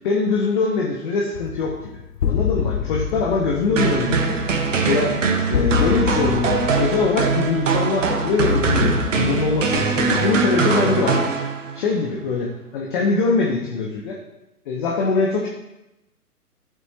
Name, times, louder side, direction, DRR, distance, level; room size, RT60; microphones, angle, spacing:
voice 1, 0.0-1.7 2.3-4.4 4.9-5.2 5.5-11.2 11.7-14.2 14.7-15.5, left 4 dB, 30° left, -2 dB, 1.3 m, -22 dB
sound 1, 1.3-10.8, left 8 dB, 80° left, 0.7 m, -27 dB
sound 2, 3.8-11.9, right 4 dB, 50° right, 1.3 m, -22 dB
13.0 x 7.7 x 2.9 m, 0.93 s
figure-of-eight pair, 130°, 47 cm